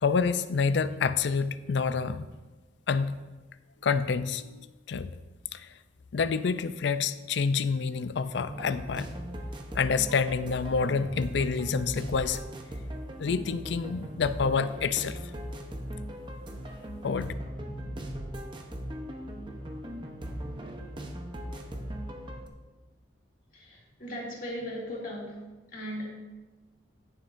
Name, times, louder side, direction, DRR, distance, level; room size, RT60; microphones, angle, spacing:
voice 1, 0.0-2.3 2.9-3.2 3.8-5.1 5.5-5.7 6.1-9.1 9.7-12.4 13.2-15.2 17.0-17.3, left 5 dB, 60° left, 13 dB, 0.4 m, -28 dB
sound 1, 8.5-22.5, equal, 25° right, 0.8 m, -39 dB
voice 2, 23.5-25.4 25.7-26.1, equal, 45° left, -4 dB, 2.5 m, -37 dB
15.5 x 7.3 x 2.6 m, 1.2 s
head